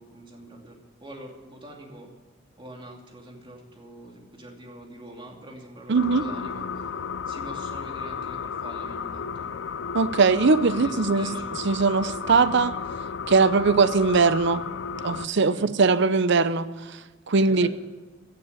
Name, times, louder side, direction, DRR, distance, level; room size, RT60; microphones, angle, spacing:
voice 1, 0.0-2.1 2.6-6.9 7.3-9.5 10.7-11.5 15.5-15.7 17.4-17.7, right 1 dB, 25° right, 0 dB, 2.7 m, -44 dB
voice 2, 5.9-6.3 9.9-12.7 13.3-14.6 15.0-17.0 17.3-17.7, right 4 dB, 65° right, 14 dB, 0.7 m, -21 dB
sound 1, 6.0-15.3, left 6 dB, 65° left, 0.5 m, -33 dB
16.0 x 6.8 x 9.8 m, 1.2 s
head